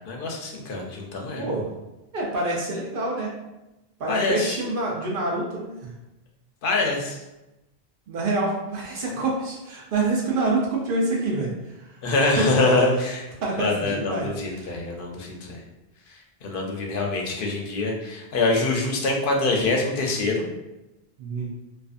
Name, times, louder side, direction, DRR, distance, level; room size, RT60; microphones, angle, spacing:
voice 1, 0.1-1.5 4.1-4.6 6.6-7.2 12.0-13.3 13.6-15.6 16.4-20.5, left 2 dB, 60° left, 0 dB, 0.6 m, -24 dB
voice 2, 1.4-1.7 2.1-3.3 4.0-5.9 8.1-11.5 12.4-12.5 13.4-14.8 21.2-21.5, right 2 dB, 60° right, -2 dB, 0.7 m, -26 dB
2.5 x 2.3 x 2.4 m, 0.97 s
omnidirectional pair, 1.1 m